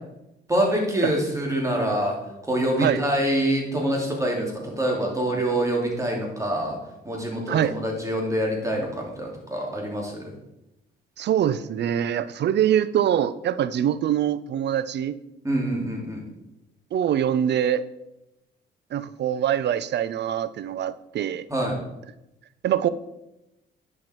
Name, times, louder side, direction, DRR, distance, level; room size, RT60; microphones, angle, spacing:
voice 1, 0.5-2.2 2.4-6.8 7.0-10.2 15.4-16.2 21.5-21.8, right 1 dB, 15° right, -1 dB, 3.0 m, -25 dB
voice 2, 11.2-15.1 16.9-17.8 18.9-21.4 22.6-22.9, right 10 dB, 60° right, 15 dB, 0.5 m, -24 dB
10.5 x 5.9 x 4.5 m, 0.91 s
cardioid pair, 90°, 20 cm